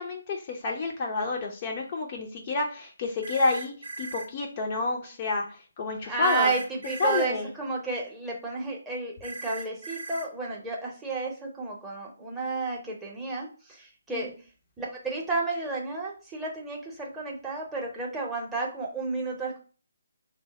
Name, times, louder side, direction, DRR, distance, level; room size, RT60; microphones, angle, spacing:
voice 1, 0.0-6.6 7.0-7.5 14.1-14.2, left 3 dB, 35° left, 1 dB, 0.5 m, -29 dB
sound 1, 3.2-4.3 6.2-7.3 9.2-10.3, right 2 dB, 70° right, 0.6 m, -38 dB
voice 2, 6.1-14.3 14.8-19.6, right 3 dB, 10° right, -3 dB, 0.7 m, -32 dB
3.3 x 2.1 x 3.9 m, 0.38 s
figure-of-eight pair, 145°, 0 cm